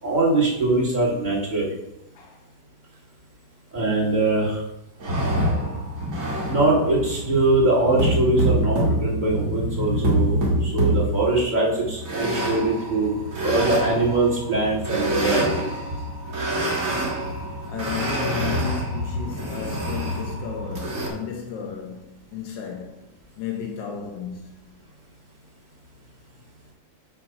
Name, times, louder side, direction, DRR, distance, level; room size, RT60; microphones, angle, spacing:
voice 1, 0.0-1.7 3.7-4.6 6.5-13.2 13.4-15.7, right 2 dB, 25° right, 2.1 m, -22 dB
sound 1, 5.0-21.1, right 1 dB, 50° right, 2.0 m, -26 dB
voice 2, 17.7-23.1 23.4-24.8, left 7 dB, 85° left, 1.6 m, -33 dB
8.3 x 2.9 x 5.8 m
omnidirectional pair, 1.9 m